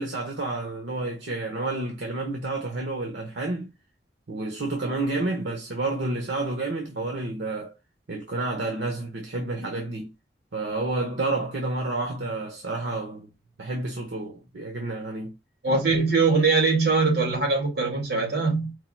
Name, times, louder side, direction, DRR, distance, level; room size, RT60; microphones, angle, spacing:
voice 1, 0.0-3.7 4.3-7.7 8.1-10.1 10.5-13.3 13.6-15.4, right 2 dB, 85° right, 0.8 m, -30 dB
voice 2, 15.6-18.7, right 4 dB, 65° right, 2.4 m, -22 dB
4.6 x 2.3 x 4.3 m
head